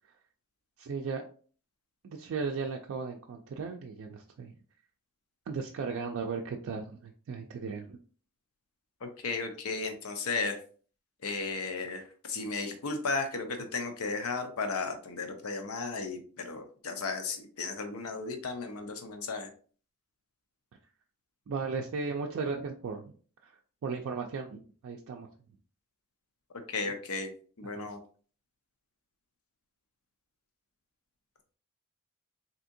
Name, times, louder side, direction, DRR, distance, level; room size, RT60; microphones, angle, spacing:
voice 1, 0.8-1.2 2.0-4.5 5.5-8.0 21.5-23.1 23.4-23.5 23.8-25.3 27.6-27.9, right 5 dB, 65° right, 1 dB, 0.3 m, -36 dB
voice 2, 9.0-10.6 11.2-19.5 26.7-27.3 27.6-28.0, left 4 dB, 90° left, 6 dB, 0.6 m, -35 dB
3.5 x 2.8 x 2.6 m, 0.43 s
head